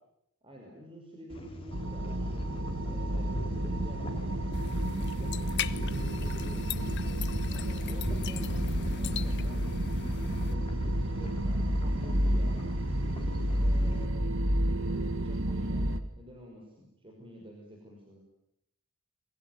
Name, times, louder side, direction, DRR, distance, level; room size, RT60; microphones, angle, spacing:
voice 1, 0.4-2.3 2.9-4.1 4.7-6.7 7.4-8.6 9.0-9.7 10.5-10.7 11.1-12.6 13.6-14.3 14.7-15.9 16.1-18.2, equal, 25° right, 0 dB, 5.6 m, -49 dB
sound 1, 1.3-14.1, left 1 dB, 25° left, 4.4 m, -43 dB
sound 2, 1.7-16.0, right 1 dB, 65° right, 2.1 m, -30 dB
sound 3, 4.5-10.5, left 7 dB, 55° left, 1.0 m, -40 dB
28.5 x 22.5 x 9.4 m, 0.81 s
head